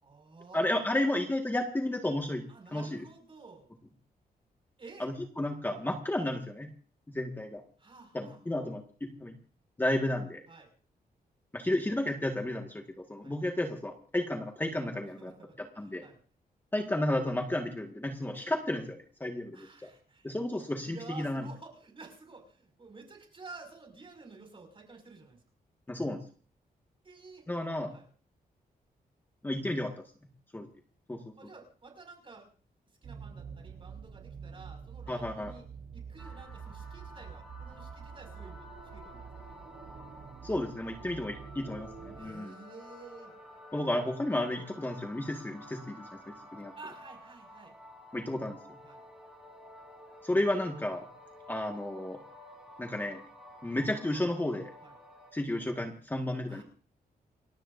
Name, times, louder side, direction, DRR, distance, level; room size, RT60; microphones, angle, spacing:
voice 1, 0.0-1.1 2.5-3.7 4.8-5.1 5.8-6.0 7.8-8.7 10.5-10.7 13.2-13.4 15.2-16.2 19.5-20.3 20.8-25.4 27.0-28.1 31.4-32.5 33.0-35.7 35.9-38.7 38.9-39.4 42.2-43.3 46.8-47.7 48.8-49.0 53.7-53.8 54.8-54.9 56.5-56.6, right 3 dB, 35° right, 3 dB, 5.9 m, -51 dB
voice 2, 0.5-2.5 2.7-3.0 5.0-6.7 7.1-7.6 8.1-9.4 9.8-10.4 11.5-15.3 15.6-16.0 16.7-19.9 20.2-21.5 25.9-26.2 27.5-27.9 29.4-29.9 30.5-30.7 31.1-31.2 35.1-35.5 40.4-42.5 43.7-46.7 48.1-48.6 50.2-51.1 51.5-52.2 52.8-53.2 53.6-54.7 55.3-56.6, left 1 dB, 15° left, 2 dB, 1.7 m, -32 dB
sound 1, 33.0-42.3, right 6 dB, 80° right, 7.9 m, -47 dB
sound 2, 36.2-55.3, left 1 dB, 5° right, 6.7 m, -52 dB
29.5 x 14.5 x 2.7 m, 0.42 s
wide cardioid pair, 140°, 16 cm